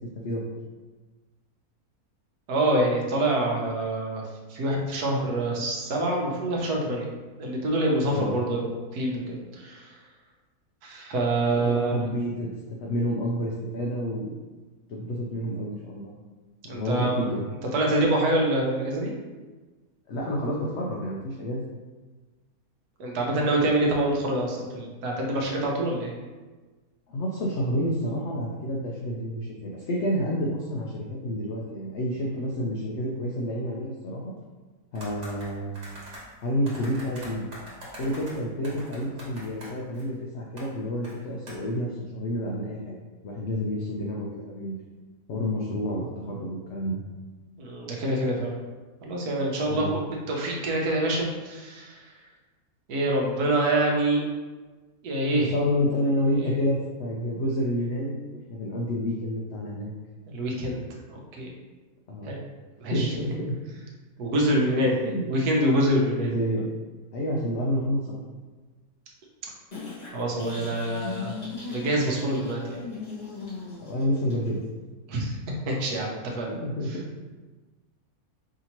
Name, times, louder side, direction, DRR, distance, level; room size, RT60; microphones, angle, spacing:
voice 1, 2.5-4.2 4.5-7.1 7.4-9.8 10.8-12.0 16.7-17.3 17.7-19.1 23.0-26.1 47.6-48.5 49.0-49.9 50.3-52.0 52.9-54.2 55.0-55.5 56.3-56.6 60.3-61.5 62.3-62.4 62.8-63.1 64.2-66.3 70.1-71.3 71.7-72.8 75.1-75.4 75.7-76.5, right 1 dB, 75° right, -1 dB, 1.2 m, -26 dB
voice 2, 11.5-12.5 12.8-14.3 14.9-16.1 16.6-17.4 20.1-21.6 27.1-34.3 34.9-35.7 36.4-37.5 38.0-42.9 43.2-44.7 45.3-47.0 49.7-49.9 55.3-59.9 62.1-62.3 62.9-63.5 64.9-65.3 66.2-66.7 67.1-68.2 73.8-74.6 76.5-77.0, equal, 65° left, -3 dB, 0.7 m, -29 dB
sound 1, 34.9-36.2 36.7-40.0 40.6-40.7 41.0-41.1 41.5-41.6, right 1 dB, 50° right, 1.4 m, -43 dB
sound 2, 69.7-74.7, left 4 dB, 30° left, 1.2 m, -38 dB
4.9 x 2.8 x 2.9 m, 1.3 s
omnidirectional pair, 1.7 m